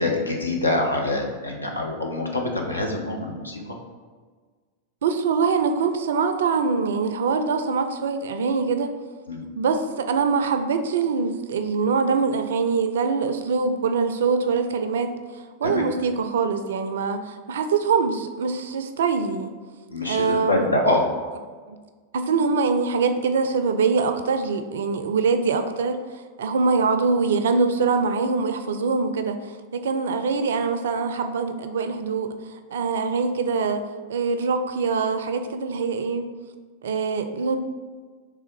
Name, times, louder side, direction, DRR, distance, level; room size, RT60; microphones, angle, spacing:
voice 1, 0.0-3.6 9.3-9.4 15.6-15.8 19.9-21.1, left 2 dB, 80° left, 1 dB, 0.7 m, -25 dB
voice 2, 5.0-8.9 9.6-19.5 20.0-20.7 21.7-21.8 22.1-26.0 26.4-29.4 29.7-33.8 34.1-36.3 36.8-37.6, right 5 dB, 60° right, 8 dB, 0.4 m, -23 dB
3.5 x 3.4 x 4.4 m, 1.5 s
figure-of-eight pair, 90°, 0 cm